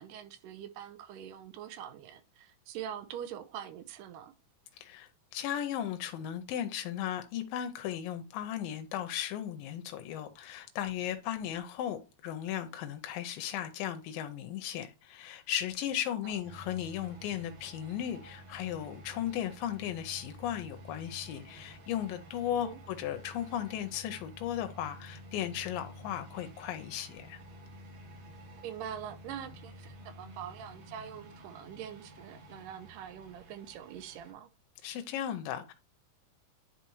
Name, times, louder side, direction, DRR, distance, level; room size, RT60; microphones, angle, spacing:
voice 1, 0.0-4.3 16.2-16.3 22.5-22.8 28.6-34.5, right 9 dB, 85° right, 2.2 m, -44 dB
voice 2, 4.8-27.4 34.8-35.7, left 10 dB, 85° left, 2.4 m, -36 dB
sound 1, 16.4-34.3, equal, 60° right, 2.2 m, -51 dB
10.5 x 4.0 x 3.0 m
omnidirectional pair, 4.0 m